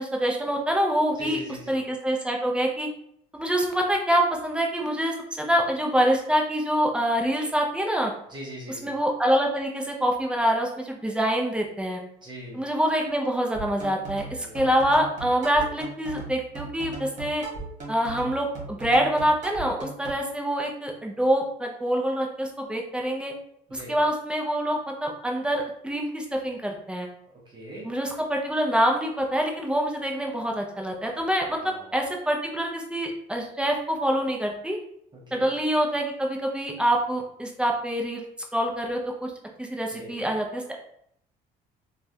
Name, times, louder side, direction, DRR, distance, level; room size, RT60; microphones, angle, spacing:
voice 1, 0.0-1.4 1.7-2.9 3.3-8.1 8.7-12.0 12.5-17.4 17.9-23.3 23.7-27.1 27.8-34.8 35.3-38.2 38.5-39.3 39.6-40.8, equal, 5° right, 1 dB, 0.5 m, -25 dB
voice 2, 1.2-1.7 8.3-8.9 12.2-12.6 14.4-14.8 23.7-24.0 27.5-27.8 31.6-31.9 35.1-35.5 39.9-40.1, equal, 25° right, -4 dB, 0.9 m, -41 dB
sound 1, 13.5-20.1, right 3 dB, 45° right, 1.3 m, -38 dB
3.1 x 2.3 x 2.6 m, 0.71 s
cardioid pair, 110°, 17 cm